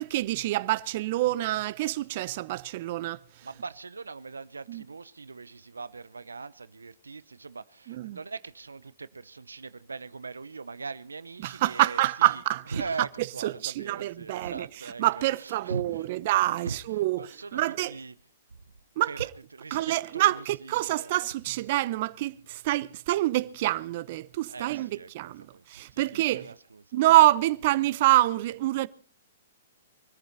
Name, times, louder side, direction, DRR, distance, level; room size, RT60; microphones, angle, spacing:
voice 1, 0.0-3.2 4.7-4.8 7.9-8.2 11.4-12.8 13.4-14.7 15.0-17.9 19.0-19.3 19.7-26.5 26.9-28.9, right 16 dB, 50° right, 0.9 m, -26 dB
voice 2, 3.4-12.4 12.7-16.1 16.6-18.2 19.1-21.1 24.5-25.6 25.9-27.0, right 4 dB, 85° right, 0.8 m, -41 dB
24.0 x 14.5 x 4.0 m
hypercardioid pair, 120°, 0 cm